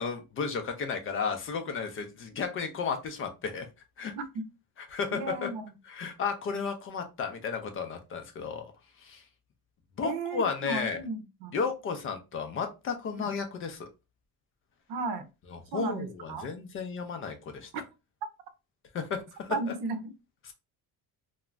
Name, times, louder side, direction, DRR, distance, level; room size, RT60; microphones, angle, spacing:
voice 1, 0.0-3.7 4.0-4.1 4.9-5.5 5.9-8.7 9.0-9.2 10.0-11.0 11.5-13.9 15.5-17.7 18.9-19.6 20.4-20.5, left 5 dB, 35° left, 6 dB, 0.4 m, -33 dB
voice 2, 5.1-5.7 10.0-11.6 13.2-13.3 14.9-15.2 15.7-16.5 17.7-17.8 19.5-20.1, right 3 dB, 70° right, 9 dB, 0.6 m, -34 dB
2.4 x 2.0 x 3.1 m, 0.27 s
cardioid pair, 150°, 39 cm